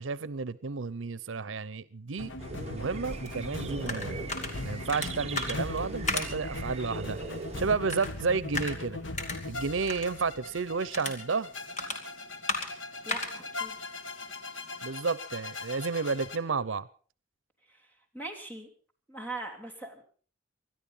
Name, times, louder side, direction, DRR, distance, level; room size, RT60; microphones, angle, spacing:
voice 1, 0.0-2.3 2.7-4.2 4.6-7.2 7.6-9.0 9.5-11.5 14.8-16.9, right 4 dB, 90° right, 0.7 m, -31 dB
sound 1, 2.2-16.4, left 2 dB, 75° left, 1.3 m, -40 dB
sound 2, 2.4-7.7, right 3 dB, 35° right, 1.2 m, -40 dB
sound 3, 3.3-14.9, left 3 dB, 40° left, 2.5 m, -39 dB
voice 2, 13.0-14.0 17.7-17.8 18.1-18.7 19.1-20.0, right 2 dB, 10° left, 3.0 m, -41 dB
21.0 x 12.5 x 5.6 m
head